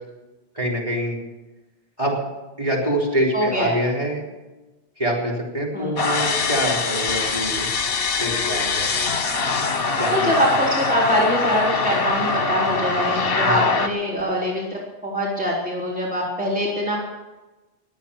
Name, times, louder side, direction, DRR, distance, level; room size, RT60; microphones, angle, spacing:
voice 1, 0.5-1.2 2.0-2.2 2.6-4.2 5.0-7.6 8.2-9.2 10.0-10.3 13.4-13.6, right 1 dB, 30° right, -3 dB, 4.3 m, -25 dB
voice 2, 3.3-3.7 5.7-6.0 10.1-17.0, equal, 10° right, -4 dB, 3.6 m, -23 dB
sound 1, 6.0-13.9, left 4 dB, 65° left, 1.4 m, -23 dB
21.5 x 8.8 x 7.2 m, 1.1 s
omnidirectional pair, 1.1 m